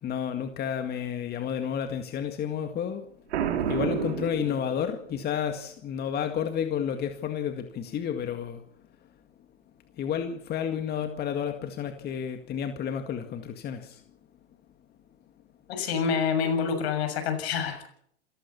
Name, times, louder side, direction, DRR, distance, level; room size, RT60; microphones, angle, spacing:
voice 1, 0.0-3.1 3.7-8.6 10.0-14.0, left 8 dB, 30° left, 7 dB, 2.0 m, -31 dB
Boom, 3.3-5.2, right 8 dB, 70° right, 4.0 m, -29 dB
voice 2, 15.7-17.9, left 6 dB, 65° left, 8 dB, 6.8 m, -27 dB
27.5 x 15.0 x 7.0 m, 0.68 s
hypercardioid pair, 110°, 34 cm